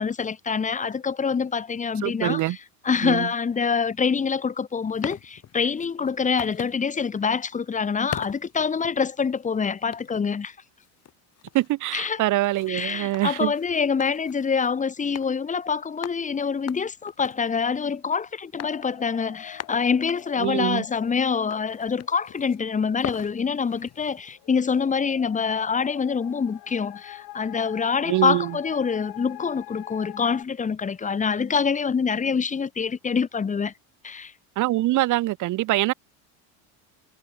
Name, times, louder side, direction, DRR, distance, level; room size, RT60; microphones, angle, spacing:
voice 1, 0.0-2.6 2.8-10.5 11.9-12.2 12.7-33.7 34.0-34.3, left 6 dB, 15° left, 1.4 m, -25 dB
voice 2, 2.0-2.6 3.0-3.3 11.5-13.5 20.4-20.8 28.1-28.5 34.6-35.9, right 17 dB, 45° right, 1.0 m, -24 dB
sound 1, 4.7-6.8 7.1-7.4 8.1-9.4 9.9-10.3 10.8-14.7 15.1-15.3 15.6-15.7 16.0-18.1 18.6-18.9 19.2-19.3 19.6-21.2 21.5-22.6 23.0-24.4, left 10 dB, 35° left, 4.8 m, -40 dB
sound 2, 18.6-30.4, left 18 dB, 55° left, 5.5 m, -45 dB
cardioid pair, 140°, 44 cm